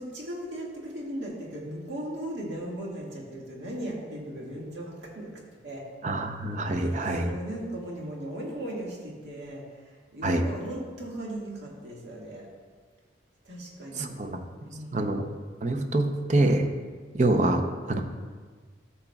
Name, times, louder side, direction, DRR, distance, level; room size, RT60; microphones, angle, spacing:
voice 1, 0.0-5.8 6.6-12.5 13.4-14.2 14.7-15.2, right 1 dB, 65° right, -3 dB, 1.8 m, -38 dB
voice 2, 6.0-7.3 10.2-10.5 13.9-14.4 14.9-15.3 15.6-16.7 17.1-18.0, right 2 dB, 40° right, 6 dB, 0.6 m, -25 dB
12.5 x 7.1 x 2.3 m, 1.5 s
head